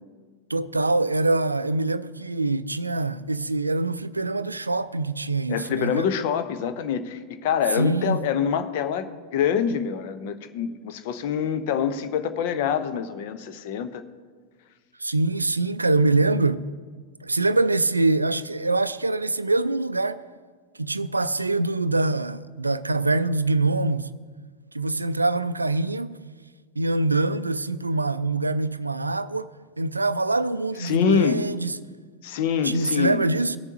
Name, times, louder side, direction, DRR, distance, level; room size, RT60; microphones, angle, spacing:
voice 1, 0.5-6.1 7.8-8.2 15.0-16.7 17.2-20.2 20.8-24.1 24.7-26.2 26.8-29.5 29.8-31.7 32.6-33.6, right 2 dB, 80° right, 0.3 m, -24 dB
voice 2, 5.5-14.0 30.8-31.4 32.2-33.2, left 7 dB, 50° left, 0.7 m, -25 dB
17.5 x 7.0 x 2.8 m
figure-of-eight pair, 90°, 0 cm